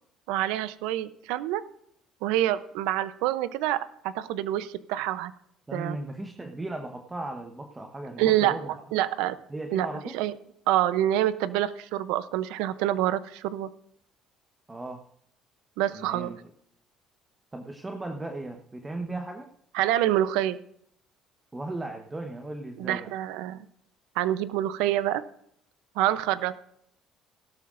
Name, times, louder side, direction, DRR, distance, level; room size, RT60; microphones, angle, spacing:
voice 1, 0.3-1.6 2.2-5.3 5.7-6.0 8.2-8.6 8.9-9.4 9.7-9.9 10.1-10.3 10.7-13.7 15.8-16.3 19.7-20.6 22.8-23.7 24.2-25.2 26.0-26.5, right 13 dB, 90° right, 14 dB, 0.7 m, -26 dB
voice 2, 5.7-8.8 9.5-10.2 14.7-15.0 15.9-16.4 17.5-19.5 21.5-23.1, right 2 dB, 20° right, 4 dB, 1.1 m, -36 dB
16.5 x 12.5 x 2.6 m, 0.70 s
cardioid pair, 95°, 0 cm